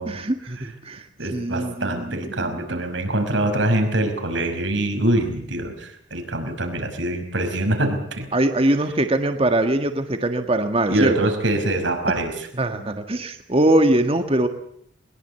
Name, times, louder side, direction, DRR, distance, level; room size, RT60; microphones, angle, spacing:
voice 1, 0.1-2.8 8.3-11.3 12.5-14.5, right 1 dB, 30° right, 7 dB, 1.7 m, -22 dB
voice 2, 1.2-8.3 10.9-12.3, right 1 dB, 75° right, 5 dB, 5.4 m, -24 dB
22.5 x 21.5 x 8.2 m, 0.67 s
head